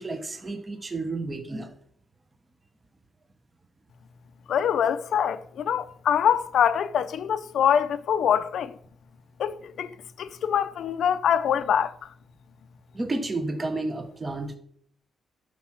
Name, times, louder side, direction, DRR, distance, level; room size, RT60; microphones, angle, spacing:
voice 1, 0.0-1.7 12.9-14.6, right 2 dB, 20° right, 0.9 m, -31 dB
voice 2, 4.5-8.7 9.4-9.9 10.2-11.9, left 8 dB, 65° left, 0.6 m, -24 dB
12.5 x 4.7 x 5.8 m
wide cardioid pair, 160°, 0 cm